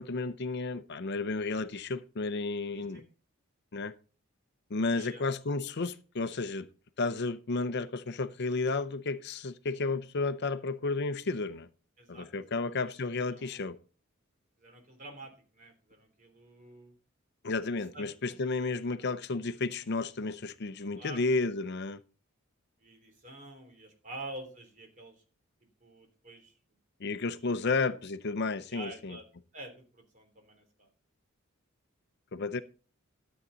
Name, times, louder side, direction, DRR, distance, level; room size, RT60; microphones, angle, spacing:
voice 1, 0.0-3.0 3.7-3.9 4.7-6.7 7.0-11.7 12.1-13.8 17.4-22.0 27.0-29.2 32.3-32.6, left 3 dB, 55° left, 0.7 m, -32 dB
voice 2, 2.7-3.0 4.9-5.2 12.0-12.9 13.3-13.6 14.6-16.9 17.9-18.1 18.6-18.8 20.9-21.5 22.8-25.2 25.6-26.5 27.6-27.7 28.7-29.2 29.5-30.9 32.5-32.6, right 1 dB, 40° right, 3.2 m, -48 dB
12.5 x 8.1 x 3.9 m
head